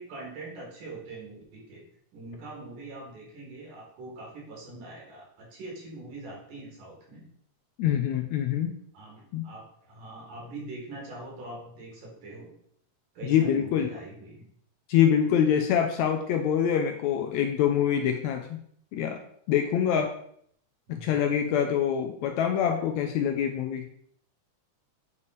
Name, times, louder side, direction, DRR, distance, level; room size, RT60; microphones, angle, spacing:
voice 1, 0.0-1.8 2.1-7.3 8.9-12.5 13.2-14.5 20.9-21.2, right 2 dB, 85° right, -2 dB, 3.7 m, -43 dB
voice 2, 7.8-8.7 9.3-9.4 13.3-13.9 14.9-18.6 18.9-19.2 19.5-20.1 20.9-23.9, left 9 dB, 80° left, 5 dB, 1.7 m, -25 dB
8.4 x 3.3 x 4.2 m, 0.65 s
omnidirectional pair, 3.6 m